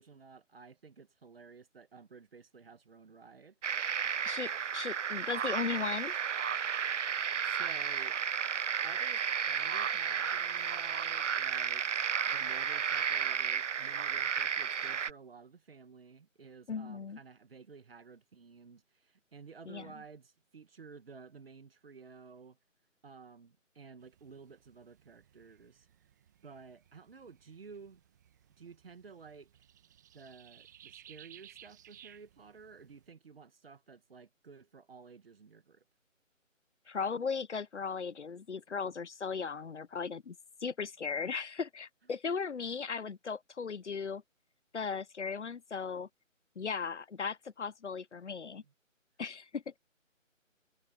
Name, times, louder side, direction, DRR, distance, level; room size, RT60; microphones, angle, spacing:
voice 1, 0.0-3.6 7.4-8.2 8.8-11.8 12.3-22.6 23.0-25.9 26.4-28.0 28.6-29.5 30.1-35.8 48.4-48.7, right 5 dB, 45° right, 2.0 m, -53 dB
sound 1, 3.6-15.1, right 7 dB, 65° right, 0.6 m, -33 dB
voice 2, 4.2-6.2 16.7-17.2 19.7-19.9 36.9-40.4 40.6-44.2 44.7-46.1 46.6-48.6 49.2-49.8, left 5 dB, 60° left, 0.8 m, -37 dB
sound 2, 24.0-33.1, right 11 dB, 15° right, 1.4 m, -59 dB
figure-of-eight pair, 160°, 39 cm